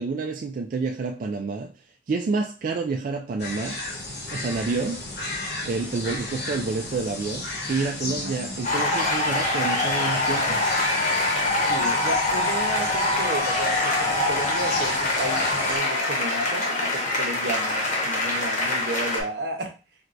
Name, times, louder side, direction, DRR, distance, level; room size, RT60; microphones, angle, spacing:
voice 1, 0.0-1.7 2.1-3.8 4.3-5.0 5.6-10.6, right 4 dB, 50° right, 0.3 m, -28 dB
sound 1, 3.4-15.8, left 2 dB, 70° left, 1.1 m, -34 dB
sound 2, 8.6-19.2, left 2 dB, 45° left, 0.9 m, -24 dB
voice 2, 11.7-19.7, right 2 dB, 80° right, 0.8 m, -33 dB
4.4 x 2.2 x 2.5 m
head